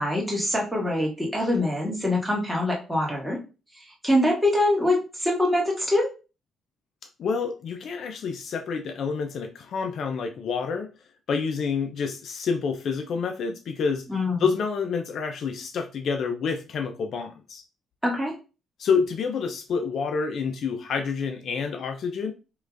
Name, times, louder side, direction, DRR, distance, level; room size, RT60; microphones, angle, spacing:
voice 1, 0.0-3.4 4.0-6.1 14.1-14.4 18.0-18.3, left 1 dB, 5° right, 1.8 m, -24 dB
voice 2, 7.2-10.9 11.3-14.0 14.4-17.6 18.8-22.3, left 5 dB, 65° left, 0.5 m, -28 dB
4.7 x 3.2 x 2.5 m
cardioid pair, 95°, 0 cm